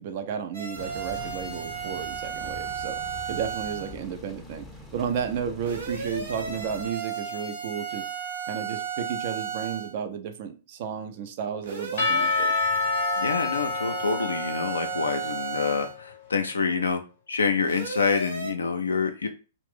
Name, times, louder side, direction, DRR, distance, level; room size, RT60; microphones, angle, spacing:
voice 1, 0.0-3.0 3.3-8.1 8.5-12.5, right 7 dB, 45° right, 7 dB, 0.5 m, -33 dB
sound 1, 0.5-3.9 5.6-9.9 11.6-15.9 17.6-18.5, right 6 dB, 60° right, 0.9 m, -34 dB
sound 2, 0.7-6.9, left 2 dB, 5° left, 0.6 m, -44 dB
Percussion / Church bell, 12.0-15.8, left 4 dB, 50° left, 0.7 m, -28 dB
voice 2, 13.2-17.0 17.3-19.3, left 5 dB, 75° left, 5 dB, 0.4 m, -27 dB
2.4 x 2.0 x 3.5 m, 0.34 s
figure-of-eight pair, 115°, 0 cm